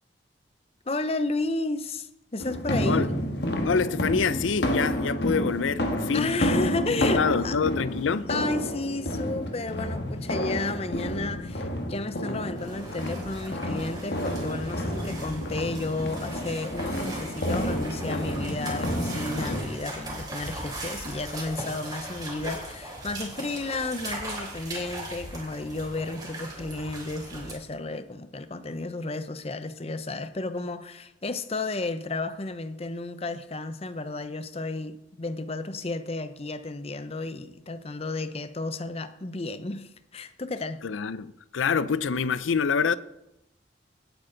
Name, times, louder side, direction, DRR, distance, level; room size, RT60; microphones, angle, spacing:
voice 1, 0.9-3.1 6.1-7.6 8.3-40.8, left 2 dB, 30° left, 0.7 m, -32 dB
sound 1, 2.4-19.6, equal, 60° left, 1.6 m, -30 dB
voice 2, 3.6-6.3 7.1-8.3 40.8-43.0, left 5 dB, 90° left, 0.5 m, -26 dB
sound 2, 12.5-27.5, right 1 dB, 20° right, 3.5 m, -39 dB
18.0 x 8.7 x 3.9 m
head